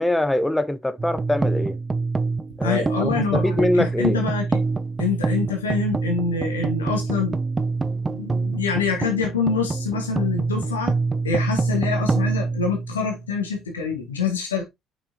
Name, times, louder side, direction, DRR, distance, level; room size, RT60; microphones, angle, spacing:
voice 1, 0.0-1.8 2.6-4.2, left 1 dB, 10° left, 0.9 m, -23 dB
sound 1, 1.0-13.4, right 3 dB, 25° right, 0.5 m, -25 dB
voice 2, 2.6-4.6 5.0-7.4 8.1-14.6, left 5 dB, 85° left, 1.5 m, -26 dB
6.5 x 6.0 x 2.8 m
figure-of-eight pair, 50°, 0 cm